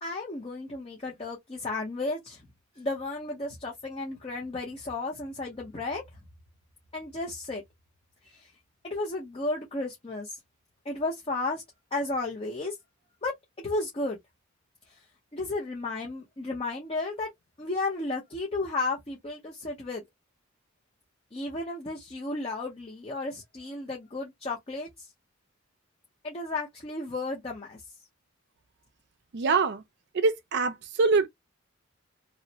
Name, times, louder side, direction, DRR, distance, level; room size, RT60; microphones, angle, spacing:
voice 1, 0.0-2.4 2.8-6.0 6.9-7.6 8.2-8.5 8.8-10.4 10.8-11.6 11.9-12.8 13.2-13.3 13.6-14.2 15.3-17.3 17.6-20.0 21.3-25.1 26.2-27.8, left 2 dB, 30° left, 0.7 m, -33 dB
voice 2, 29.3-29.8 30.1-31.3, right 4 dB, 55° right, 0.4 m, -24 dB
3.0 x 2.0 x 2.7 m
head